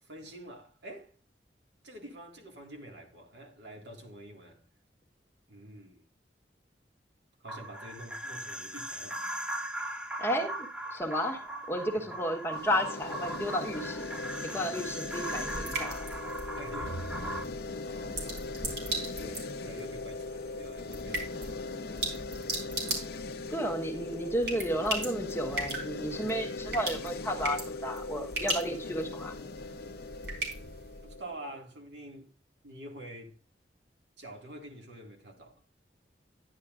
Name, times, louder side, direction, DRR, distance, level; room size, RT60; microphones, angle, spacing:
voice 1, 0.0-1.2 1.8-4.6 5.5-6.0 7.4-9.2 14.5-14.7 16.4-17.1 17.5-18.5 19.2-21.7 21.9-22.1 31.0-32.3 32.6-33.4 34.2-35.7, right 1 dB, 90° right, 2.0 m, -47 dB
sound 1, 7.5-17.4, right 1 dB, 5° right, 0.6 m, -39 dB
voice 2, 10.2-14.1 14.4-16.1 23.5-29.4, equal, 15° left, 1.1 m, -33 dB
sound 2, 12.5-31.6, left 3 dB, 60° left, 0.6 m, -40 dB
sound 3, 14.8-31.2, right 1 dB, 75° right, 3.8 m, -39 dB
11.0 x 10.0 x 2.5 m
head